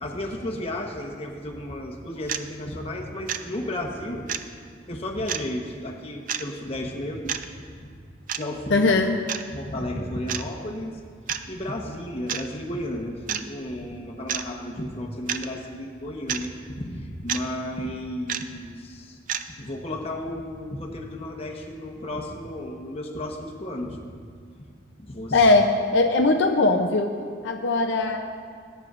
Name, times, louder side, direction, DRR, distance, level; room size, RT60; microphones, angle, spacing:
voice 1, 0.0-4.3 4.9-7.4 7.8-8.0 8.3-8.9 9.5-11.0 11.5-19.2 19.5-24.0 25.0-25.4, left 1 dB, 30° left, 1 dB, 1.1 m, -33 dB
sound 1, 2.3-2.4 3.3-3.4 4.3-4.4 5.3-5.4 6.3-6.4 7.3-7.5 8.3-8.4 9.3-9.4 10.3-10.4 11.3-11.4 12.3-12.5 13.3-13.4 14.3-14.4 15.3-15.5 16.3-16.5 17.3-17.5 18.3-18.4 19.3-19.4, right 9 dB, 45° right, 0.4 m, -28 dB
voice 2, 8.7-9.2 25.3-25.6 25.9-27.1 27.4-28.2, left 3 dB, 70° left, 4 dB, 0.6 m, -19 dB
19.5 x 9.2 x 2.5 m, 2.1 s
head